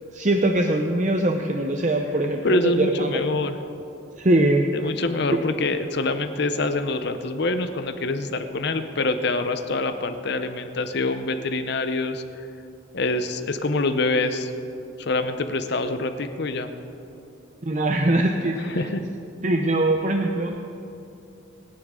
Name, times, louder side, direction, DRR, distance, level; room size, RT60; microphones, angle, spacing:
voice 1, 0.1-3.2 4.2-4.7 5.3-5.4 17.6-18.9 19.4-20.6, right 1 dB, 35° right, 3 dB, 0.6 m, -22 dB
voice 2, 2.4-3.6 4.7-12.5 12.9-14.5 15.0-16.7 18.7-19.0, left 2 dB, 55° left, 9 dB, 0.7 m, -25 dB
26.5 x 9.9 x 3.7 m, 2.8 s
head